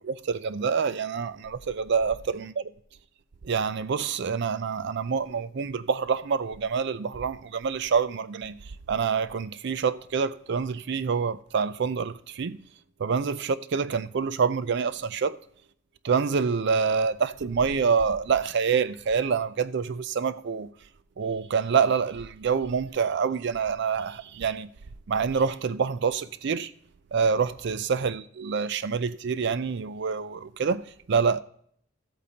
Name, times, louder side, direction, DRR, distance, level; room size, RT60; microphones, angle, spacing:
voice 1, 0.1-2.6 3.4-12.6 13.0-15.4 16.0-20.7 21.2-24.7 25.1-26.7 27.1-31.4, right 6 dB, 60° right, 0.4 m, -26 dB
14.0 x 8.4 x 2.8 m
head